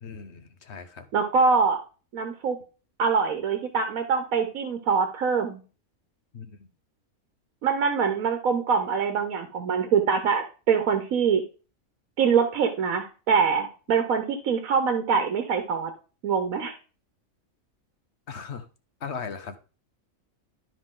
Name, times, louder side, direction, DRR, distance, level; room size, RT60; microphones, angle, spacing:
voice 1, 0.0-1.0 6.3-6.7 18.3-18.7 19.0-19.6, left 5 dB, 55° left, 10 dB, 1.2 m, -38 dB
voice 2, 1.1-1.8 2.1-2.6 3.0-5.6 7.6-11.4 12.2-15.9 16.2-16.8, right 5 dB, 80° right, 7 dB, 1.4 m, -24 dB
12.0 x 5.2 x 3.8 m, 0.36 s
omnidirectional pair, 1.5 m